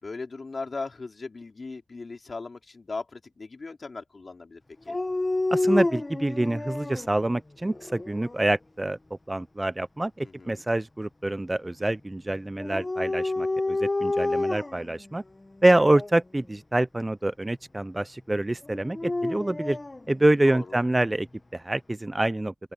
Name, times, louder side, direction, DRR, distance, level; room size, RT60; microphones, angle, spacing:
voice 1, 0.0-4.6 4.9-5.0 10.2-10.7 20.4-20.8, left 3 dB, 45° left, 3.9 m, -38 dB
Dog, 4.9-7.1 7.7-8.5 12.6-14.9 15.7-16.1 18.7-20.0, left 2 dB, 25° left, 1.3 m, -29 dB
voice 2, 5.5-9.0 9.3-15.2 15.6-19.8 20.1-21.3 21.5-22.5, right 1 dB, 20° right, 0.5 m, -26 dB
open air
cardioid pair, 75°, 0 cm